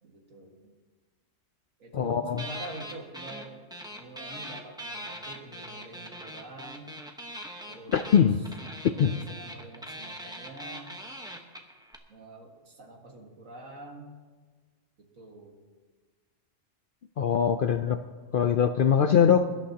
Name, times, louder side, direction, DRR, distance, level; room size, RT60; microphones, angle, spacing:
voice 1, 0.0-0.7 1.8-3.7 3.9-6.9 7.7-8.5 8.9-11.0 12.1-14.1 15.0-15.6 18.9-19.6, right 1 dB, 80° right, 1 dB, 2.3 m, -45 dB
voice 2, 1.9-2.4 7.9-8.4 9.0-9.1 17.2-18.0 18.3-19.5, left 8 dB, 60° left, 8 dB, 0.5 m, -22 dB
sound 1, 2.4-3.5 3.7-12.0, right 1 dB, 5° right, 0.9 m, -41 dB
23.0 x 12.0 x 2.9 m, 1.4 s
omnidirectional pair, 1.4 m